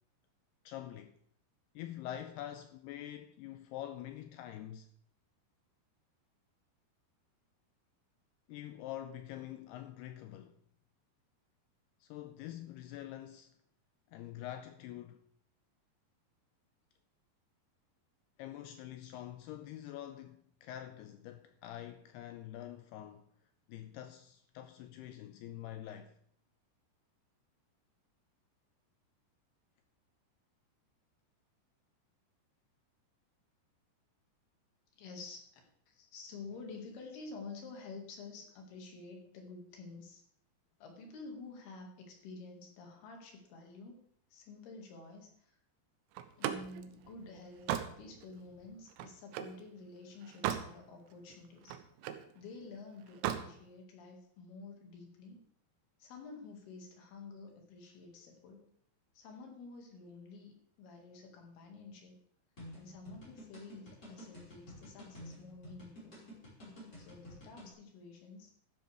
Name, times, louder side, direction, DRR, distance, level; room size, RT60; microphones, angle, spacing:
voice 1, 0.7-1.2 1.8-4.9 8.5-10.6 12.0-13.5 14.1-15.2 18.4-23.3 23.7-26.2 35.9-36.1, left 12 dB, 85° left, 2.3 m, -46 dB
voice 2, 34.9-35.6 36.1-40.2 40.8-44.0 44.3-45.6 46.4-47.7 48.0-51.8 52.3-55.4 56.0-58.7 59.1-62.2 62.7-66.3 67.0-68.5, left 3 dB, 65° left, 3.9 m, -50 dB
Slam, 46.2-49.6 50.1-50.7 51.1-52.3 53.1-53.5, right 10 dB, 80° right, 2.8 m, -38 dB
sound 1, 62.6-67.7, left 1 dB, 20° left, 5.4 m, -51 dB
13.0 x 11.5 x 3.5 m
omnidirectional pair, 5.1 m